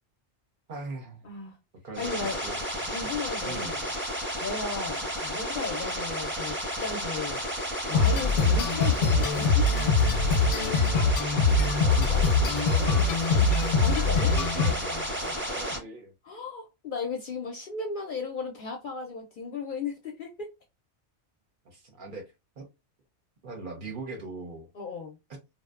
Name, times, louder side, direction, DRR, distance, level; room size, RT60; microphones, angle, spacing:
voice 1, 0.7-1.3 1.8-3.1 3.4-3.8 11.4-13.2 14.3-16.1 21.6-22.7 23.4-24.7, right 3 dB, 55° right, 0.7 m, -40 dB
voice 2, 1.2-1.6 2.0-2.4 2.9-3.9 4.4-7.4 7.9-9.6 11.6-11.7 13.8-14.3 16.2-20.5 24.7-25.2, left 4 dB, 60° left, 0.6 m, -35 dB
sound 1, 1.9-15.8, equal, 10° right, 0.7 m, -32 dB
sound 2, 7.9-15.1, left 4 dB, 90° left, 0.9 m, -23 dB
2.5 x 2.1 x 2.3 m
omnidirectional pair, 1.2 m